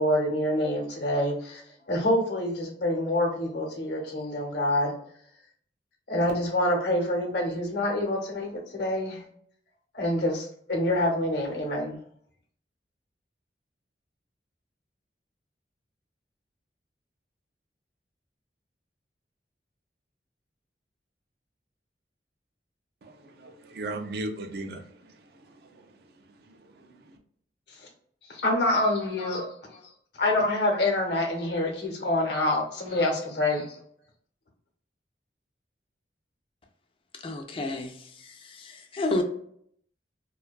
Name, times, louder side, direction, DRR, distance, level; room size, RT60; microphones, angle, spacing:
voice 1, 0.0-1.6 1.9-4.9 6.1-9.2 9.9-12.0 27.7-27.9 28.2-29.8 30.2-33.8, left 1 dB, 70° left, 0.7 m, -26 dB
voice 2, 23.0-27.2, right 2 dB, 60° right, 0.4 m, -39 dB
voice 3, 37.2-37.9 38.5-39.2, left 2 dB, 30° left, 0.4 m, -30 dB
2.5 x 2.2 x 2.3 m
head